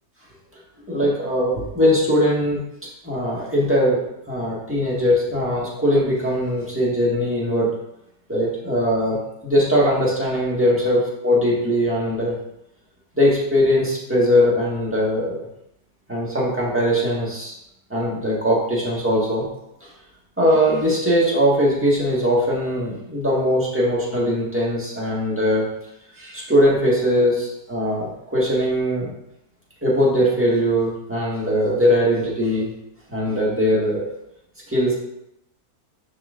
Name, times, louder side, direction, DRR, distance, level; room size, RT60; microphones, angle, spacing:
voice 1, 0.9-2.6 3.0-7.8 8.3-9.2 9.4-12.3 13.1-15.4 16.1-17.5 17.9-19.5 19.8-19.9 20.4-25.7 26.2-29.1 29.8-32.7 33.1-34.1 34.7-34.9, equal, 10° right, -5 dB, 1.4 m, -20 dB
10.0 x 3.9 x 2.5 m, 0.83 s
omnidirectional pair, 1.7 m